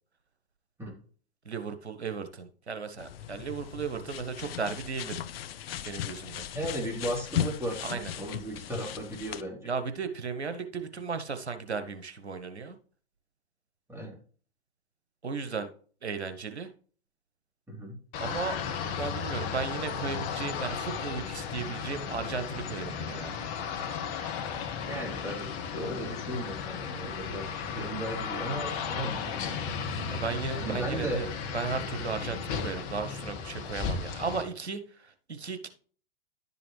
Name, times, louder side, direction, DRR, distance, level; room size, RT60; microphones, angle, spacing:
voice 1, 1.4-5.2 5.8-6.5 7.8-8.1 9.6-12.8 15.2-15.7 16.0-16.7 18.2-18.6 19.0-23.4 30.1-35.7, right 5 dB, 85° right, 9 dB, 1.0 m, -35 dB
sound 1, 3.0-9.4, left 10 dB, 65° left, 0.6 m, -37 dB
voice 2, 6.5-9.7 13.9-14.1 17.7-18.0 24.8-29.5 30.6-31.2, right 1 dB, 10° right, -1 dB, 3.3 m, -36 dB
sound 2, 18.1-34.4, left 6 dB, 40° left, 1.5 m, -35 dB
11.0 x 6.8 x 3.2 m, 0.43 s
figure-of-eight pair, 100°, 32 cm